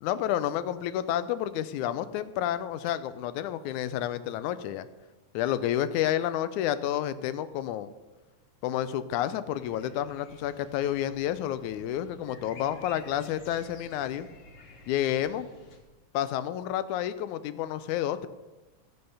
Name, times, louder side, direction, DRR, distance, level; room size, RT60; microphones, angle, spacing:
voice 1, 0.0-4.9 5.3-7.9 8.6-14.3 14.9-15.5 16.1-18.3, left 11 dB, 85° left, 13 dB, 2.1 m, -30 dB
sound 1, 9.5-15.8, left 2 dB, 65° left, 2.6 m, -51 dB
16.0 x 7.7 x 5.6 m, 1.2 s
omnidirectional pair, 3.4 m